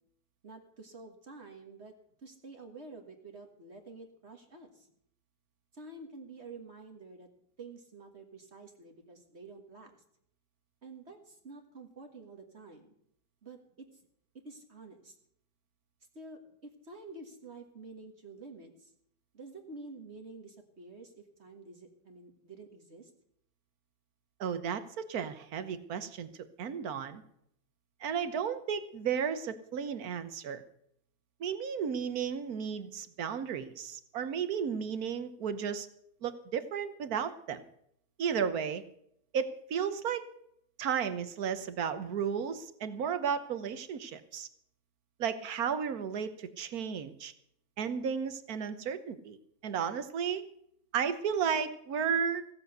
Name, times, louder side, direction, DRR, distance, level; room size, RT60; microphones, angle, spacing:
voice 1, 0.4-4.9 5.7-7.3 7.6-10.0 10.8-12.9 13.4-14.0 14.3-15.2 16.1-18.9 19.3-23.1, right 3 dB, 45° right, 4 dB, 1.9 m, -49 dB
voice 2, 24.4-26.3 26.6-27.2 28.0-30.6 31.4-35.9 36.2-37.6 38.2-38.8 39.3-40.2 40.8-44.5 45.2-47.3 47.8-49.4 49.6-50.5 50.9-52.5, right 7 dB, 65° right, 12 dB, 1.5 m, -33 dB
16.5 x 7.8 x 8.0 m, 0.72 s
omnidirectional pair, 1.7 m